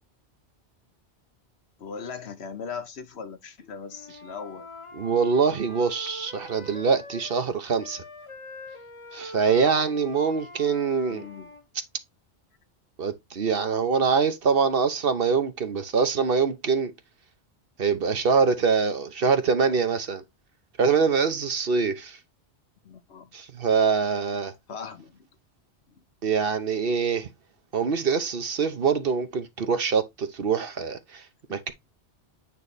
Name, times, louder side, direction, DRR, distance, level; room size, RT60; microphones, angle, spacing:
voice 1, 1.8-4.7 11.1-11.5 22.8-23.3 24.7-25.3 25.9-26.0, left 6 dB, 70° left, 1.2 m, -39 dB
Wind instrument woodwind instrument, 3.8-7.5 7.8-11.6, left 1 dB, 30° left, 1.0 m, -43 dB
voice 2, 4.9-8.0 9.1-11.2 13.0-16.9 17.8-20.2 20.8-22.2 23.3-24.5 26.2-27.3 27.7-31.2 31.5-31.7, right 5 dB, 60° right, 1.1 m, -24 dB
9.0 x 3.2 x 4.1 m
omnidirectional pair, 1.1 m